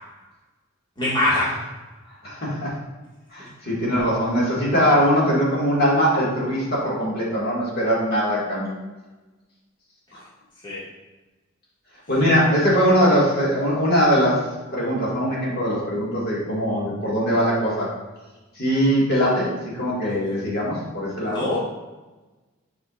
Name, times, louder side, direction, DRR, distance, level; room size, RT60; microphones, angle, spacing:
voice 1, 1.0-1.5 10.6-10.8 21.2-21.6, left 1 dB, 25° left, -9 dB, 1.8 m, -23 dB
voice 2, 2.2-2.8 3.3-8.8 10.1-10.2 12.1-17.9 18.6-21.5, equal, 55° left, -6 dB, 1.9 m, -21 dB
7.6 x 5.0 x 2.4 m, 1.2 s
head